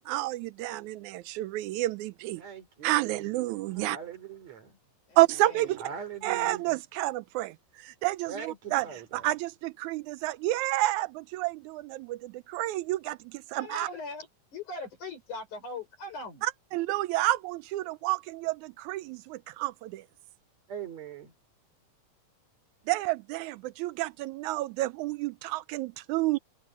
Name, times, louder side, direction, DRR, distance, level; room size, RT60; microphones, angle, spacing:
voice 1, 0.0-2.4 2.8-4.0 5.2-5.8 6.2-8.8 9.1-13.9 16.4-20.0 22.9-26.4, right 17 dB, 80° right, 1.7 m, -30 dB
voice 2, 2.4-4.7 5.8-6.6 8.3-9.3 20.7-21.3, right 7 dB, 55° right, 4.6 m, -42 dB
voice 3, 5.1-5.7 13.5-16.4, left 2 dB, 60° left, 7.4 m, -40 dB
omnidirectional pair, 3.9 m